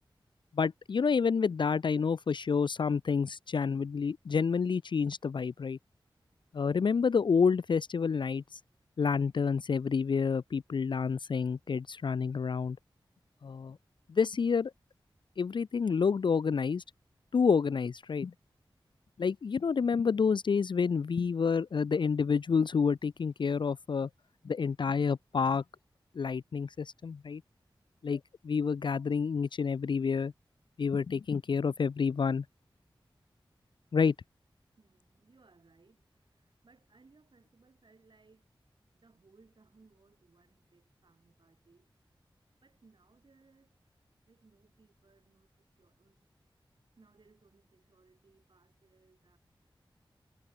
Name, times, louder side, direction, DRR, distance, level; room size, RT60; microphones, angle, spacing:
voice 1, 0.5-5.8 6.5-8.6 9.0-12.8 13.4-13.8 14.1-14.7 15.4-16.8 17.3-18.3 19.2-24.1 24.4-25.6 26.1-27.4 28.0-30.3 30.8-32.4 33.9-34.1, left 5 dB, 65° left, 0.4 m, -29 dB
voice 2, 34.8-38.5 38.9-41.9 42.6-46.3 47.0-49.4, right 4 dB, 65° right, 6.0 m, -65 dB
wide cardioid pair, 85°, 9 cm